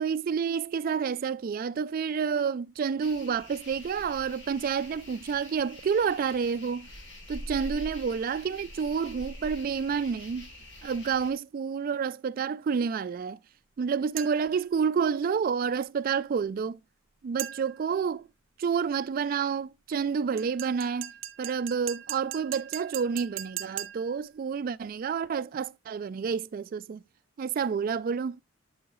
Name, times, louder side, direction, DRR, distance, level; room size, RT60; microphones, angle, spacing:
voice 1, 0.0-6.9 7.3-10.5 10.8-13.4 13.8-16.8 17.2-18.2 18.6-21.1 21.4-27.0 27.4-28.4, right 6 dB, 45° right, 0.3 m, -29 dB
sound 1, 3.0-11.3, left 1 dB, 60° left, 2.4 m, -45 dB
sound 2, 14.2-14.6 17.4-17.9 20.4-24.2, right 12 dB, 70° right, 0.7 m, -39 dB
10.5 x 4.8 x 3.0 m
head